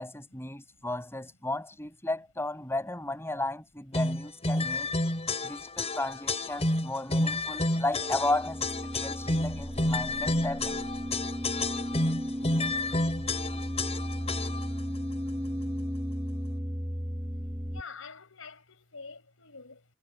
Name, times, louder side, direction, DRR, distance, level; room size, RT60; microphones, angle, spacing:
voice 1, 0.0-4.9 5.4-10.8, left 2 dB, 10° left, 7.4 m, -34 dB
sound 1, 3.9-14.8, left 2 dB, 30° left, 3.9 m, -30 dB
sound 2, 7.7-17.8, equal, 15° right, 4.6 m, -35 dB
voice 2, 17.7-19.8, left 5 dB, 70° left, 5.9 m, -47 dB
head